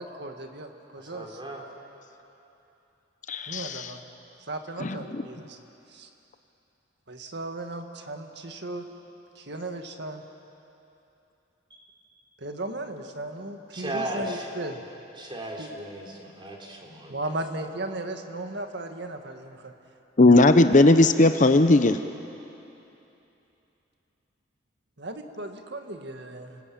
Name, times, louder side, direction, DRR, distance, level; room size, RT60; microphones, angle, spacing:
voice 1, 0.0-1.4 3.5-4.0 4.5-5.6 5.9-6.1 7.1-8.9 9.4-10.2 12.4-14.8 15.6-15.7 17.1-19.7 25.0-26.6, right 2 dB, 60° right, 5 dB, 1.9 m, -36 dB
voice 2, 1.1-1.6 13.7-14.5 15.2-17.2, right 1 dB, 25° right, 0 dB, 3.7 m, -35 dB
voice 3, 3.3-3.9 4.8-5.2 20.2-22.0, left 2 dB, 40° left, 9 dB, 0.8 m, -18 dB
29.5 x 20.0 x 8.7 m, 2.9 s
head